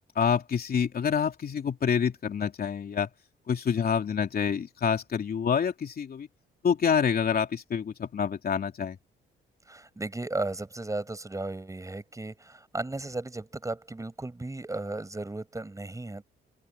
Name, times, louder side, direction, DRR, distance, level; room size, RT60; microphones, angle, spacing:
voice 1, 0.1-3.1 3.5-6.3 6.6-9.0, left 7 dB, 50° left, 3.2 m, -27 dB
voice 2, 9.7-16.2, right 2 dB, 15° right, 7.8 m, -35 dB
open air
cardioid pair, 90°, 20 cm